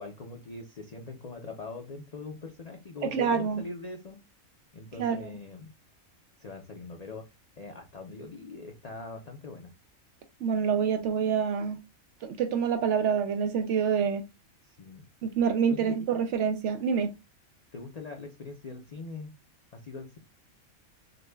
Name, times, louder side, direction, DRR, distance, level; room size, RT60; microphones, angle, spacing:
voice 1, 0.0-4.2 4.7-5.7 6.4-7.2 7.6-9.7 14.6-15.0 15.6-16.0 17.7-19.3 19.7-20.2, left 3 dB, 60° left, 0.4 m, -42 dB
voice 2, 3.0-3.6 5.0-5.2 10.4-11.8 12.2-14.3 15.2-17.1, right 7 dB, 65° right, 0.8 m, -27 dB
6.5 x 2.3 x 2.2 m
omnidirectional pair, 1.5 m